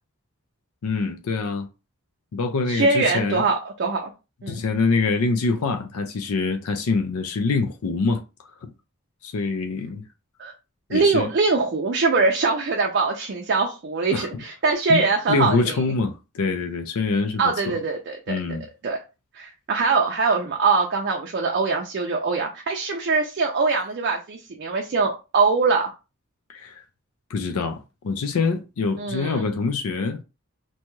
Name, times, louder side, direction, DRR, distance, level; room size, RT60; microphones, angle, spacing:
voice 1, 0.8-1.7 2.3-3.5 4.5-8.7 9.2-10.0 10.9-11.3 14.1-14.4 14.9-17.5 18.3-18.7 26.5-26.8 27.3-30.2, left 4 dB, 90° left, 0.4 m, -25 dB
voice 2, 2.7-4.1 4.4-4.6 10.4-10.5 10.9-15.7 17.4-18.4 18.8-19.0 19.3-25.9 29.0-29.4, right 4 dB, 50° right, 0.4 m, -22 dB
2.7 x 2.2 x 3.0 m
head